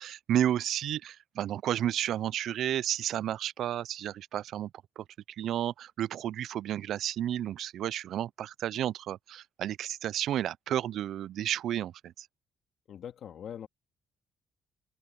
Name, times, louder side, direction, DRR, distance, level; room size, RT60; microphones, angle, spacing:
voice 1, 0.0-4.7 5.0-5.1 5.4-12.3, right 11 dB, 75° right, 0.3 m, -32 dB
voice 2, 12.9-13.7, left 9 dB, 65° left, 1.9 m, -42 dB
open air
cardioid pair, 90°, 0 cm